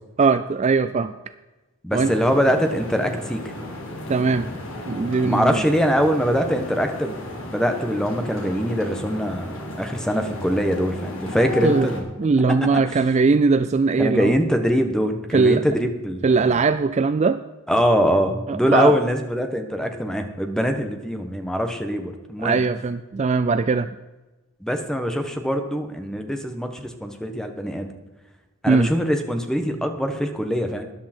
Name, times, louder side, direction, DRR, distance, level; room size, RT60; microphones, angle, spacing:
voice 1, 0.2-1.1 1.9-2.1 4.1-4.5 4.9-5.6 11.6-11.9 12.2-14.3 15.3-15.6 16.2-17.4 18.5-19.0 22.4-23.9 28.7-28.9, right 4 dB, 35° right, 12 dB, 0.3 m, -20 dB
voice 2, 1.8-3.4 5.2-12.1 14.0-16.2 17.7-22.6 24.6-27.9 28.6-30.8, equal, 5° left, 6 dB, 1.2 m, -23 dB
sound 1, 2.0-12.0, left 1 dB, 65° left, 2.9 m, -34 dB
13.5 x 10.5 x 4.4 m, 1.1 s
head